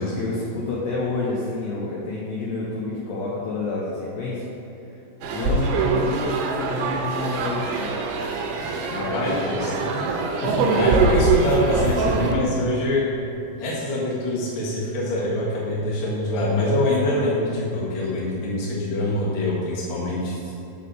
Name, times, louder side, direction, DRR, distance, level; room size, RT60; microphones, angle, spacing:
voice 1, 0.0-4.4 5.2-7.9 8.9-9.5 10.4-10.8 20.4-20.5, left 2 dB, 90° left, -5 dB, 2.0 m, -29 dB
ambience - restaurant, 5.2-12.3, right 3 dB, 80° right, 2.6 m, -23 dB
voice 2, 9.0-10.0 10.7-13.1 13.6-20.3, left 1 dB, 60° left, -7 dB, 1.2 m, -25 dB
7.2 x 4.2 x 6.4 m, 2.9 s
omnidirectional pair, 5.2 m